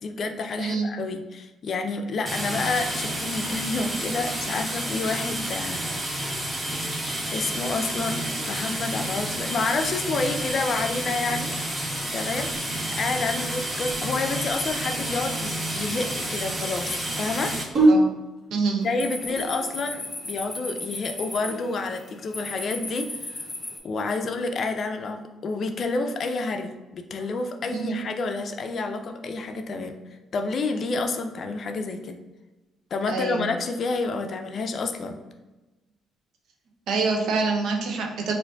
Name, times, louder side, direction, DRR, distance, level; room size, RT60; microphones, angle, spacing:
voice 1, 0.0-6.3 7.3-12.5 12.9-17.5 18.8-23.4 23.8-29.9 30.3-32.2 32.9-35.2, left 3 dB, 55° left, 6 dB, 0.4 m, -29 dB
voice 2, 0.6-0.9 17.9-18.1 18.5-18.9 27.7-28.0 33.1-33.5 36.9-38.3, right 4 dB, 75° right, 2 dB, 0.6 m, -26 dB
sound 1, 2.3-17.6, right 1 dB, 20° right, 0.9 m, -30 dB
sound 2, 14.6-15.2 17.4-19.9 21.0-21.6, right 1 dB, 50° right, 1.2 m, -24 dB
sound 3, 18.8-23.8, left 2 dB, 25° left, 0.8 m, -36 dB
4.3 x 2.6 x 2.3 m, 1.1 s
supercardioid pair, 60°, 0 cm